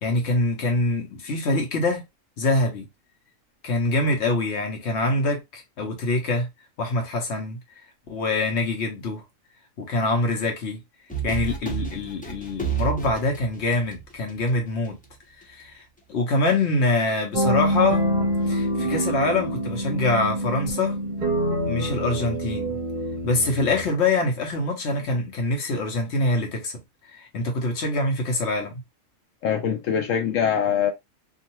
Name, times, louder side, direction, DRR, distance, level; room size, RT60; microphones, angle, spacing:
voice 1, 0.0-2.0 2.4-2.9 3.6-6.5 6.8-7.6 8.1-9.2 9.8-10.8 11.2-15.0 15.5-15.8 16.1-18.1 18.5-21.0 21.7-22.7 23.2-26.7 27.0-28.8, left 2 dB, 60° left, 1.2 m, -24 dB
sound 1, 11.1-14.5, right 7 dB, 10° left, 0.4 m, -30 dB
sound 2, 17.3-23.8, equal, 45° right, 0.8 m, -26 dB
voice 2, 29.4-30.9, left 8 dB, 85° left, 1.0 m, -23 dB
2.7 x 2.4 x 2.9 m
omnidirectional pair, 1.3 m